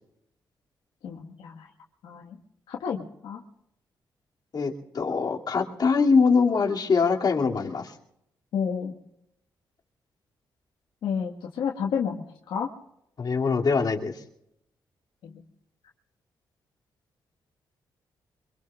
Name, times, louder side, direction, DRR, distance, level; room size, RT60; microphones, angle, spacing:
voice 1, 1.0-1.7 2.0-2.4 2.7-3.4 8.5-9.0 11.0-12.7 15.2-15.3, left 7 dB, 80° left, 0 dB, 1.6 m, -31 dB
voice 2, 4.5-7.9 13.2-14.2, left 5 dB, 55° left, -1 dB, 2.7 m, -23 dB
25.5 x 22.5 x 2.5 m, 0.79 s
supercardioid pair, 60°, 8 cm